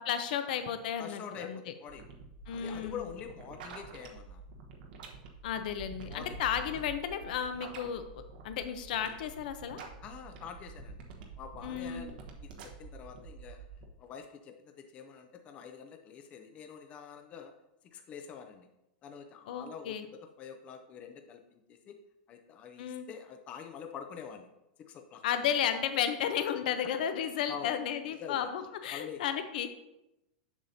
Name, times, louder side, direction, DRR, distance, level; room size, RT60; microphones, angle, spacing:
voice 1, 0.0-1.6 2.5-3.0 5.4-9.8 11.6-12.1 19.5-20.1 22.8-23.1 25.2-29.7, left 9 dB, 65° left, 9 dB, 0.7 m, -33 dB
voice 2, 1.0-2.1 2.5-4.4 6.1-6.4 10.0-11.0 11.4-13.7 14.0-17.5 17.8-18.7 19.0-22.0 22.3-24.5 24.8-25.2 26.4-26.6 26.8-27.8 28.2-28.5 28.9-29.2, left 7 dB, 25° left, 5 dB, 0.5 m, -46 dB
sound 1, 1.9-13.8, right 4 dB, 65° right, 1.1 m, -47 dB
7.3 x 6.6 x 2.7 m, 0.91 s
supercardioid pair, 155°, 5 cm